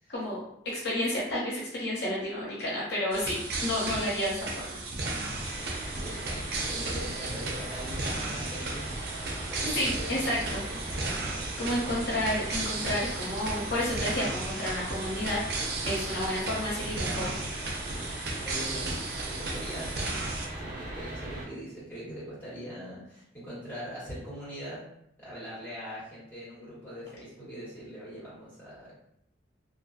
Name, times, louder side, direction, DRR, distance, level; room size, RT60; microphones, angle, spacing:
voice 1, 0.1-4.8 9.7-10.6 11.6-15.4 15.8-17.4, left 1 dB, 65° left, -5 dB, 0.7 m, -31 dB
sound 1, 3.1-20.5, right 2 dB, 55° right, 0.5 m, -35 dB
sound 2, 5.3-21.4, right 1 dB, 40° right, 0.8 m, -39 dB
voice 2, 5.9-8.8 9.4-10.9 18.4-19.9 20.6-24.8 25.2-28.9, equal, 10° left, -10 dB, 1.3 m, -42 dB
2.5 x 2.4 x 2.3 m, 0.74 s
head